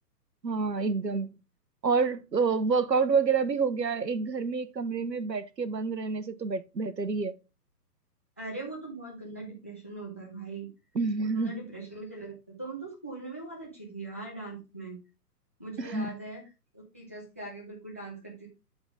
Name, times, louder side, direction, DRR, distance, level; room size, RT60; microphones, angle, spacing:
voice 1, 0.4-1.3 1.8-7.4 10.9-11.6 15.8-16.2, right 5 dB, 85° right, 0.9 m, -28 dB
voice 2, 8.4-10.7 11.2-15.0 15.6-16.4 16.7-18.5, right 3 dB, 10° left, 0.5 m, -41 dB
11.5 x 3.9 x 3.5 m
figure-of-eight pair, 130°, 49 cm